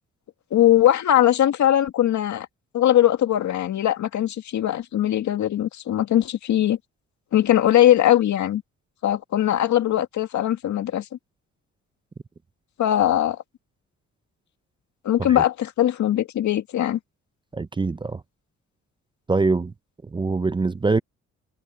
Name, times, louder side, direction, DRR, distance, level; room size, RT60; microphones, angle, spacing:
voice 1, 0.5-2.5 2.7-6.8 7.3-8.6 9.0-11.0 12.8-13.4 15.0-17.0, left 12 dB, 70° left, 2.1 m, -20 dB
voice 2, 17.5-18.2 19.3-19.7 20.1-21.0, right 3 dB, 15° right, 0.5 m, -23 dB
cardioid pair, 90°, 30 cm